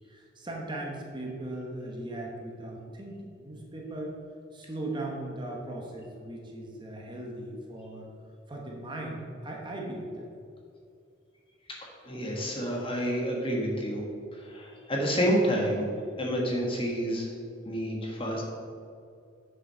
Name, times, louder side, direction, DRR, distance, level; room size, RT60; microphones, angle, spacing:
voice 1, 0.1-4.2 4.5-8.1 8.5-10.3, right 1 dB, 25° right, -1 dB, 1.2 m, -38 dB
voice 2, 11.7-14.0 14.3-15.9 16.2-17.3 17.6-18.4, equal, 30° left, -1 dB, 1.5 m, -29 dB
7.7 x 6.4 x 5.5 m, 2.5 s
head